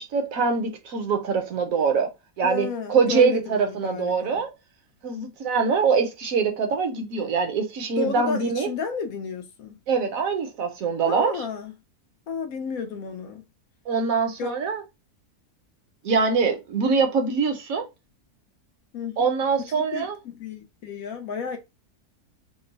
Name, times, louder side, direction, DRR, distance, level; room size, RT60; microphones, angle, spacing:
voice 1, 0.0-2.1 2.4-4.5 5.0-8.7 9.9-11.3 13.9-14.8 16.0-17.9 19.2-20.2, right 5 dB, 70° right, 1.0 m, -23 dB
voice 2, 2.4-4.4 8.0-9.8 11.0-11.7 12.3-13.4 14.4-14.5 18.9-19.3 19.7-21.6, left 5 dB, 70° left, 1.1 m, -32 dB
3.0 x 2.0 x 3.8 m
omnidirectional pair, 1.6 m